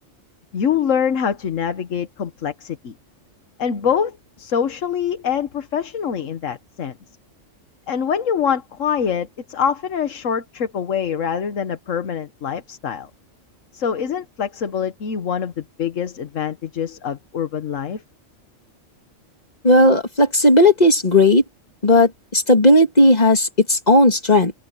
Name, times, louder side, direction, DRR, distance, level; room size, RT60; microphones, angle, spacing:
voice 1, 0.5-2.9 3.6-6.9 7.9-13.1 13.7-18.0, left 7 dB, 85° left, 1.5 m, -24 dB
voice 2, 19.6-21.4 21.8-24.5, left 1 dB, 35° left, 2.8 m, -14 dB
omnidirectional pair, 1.3 m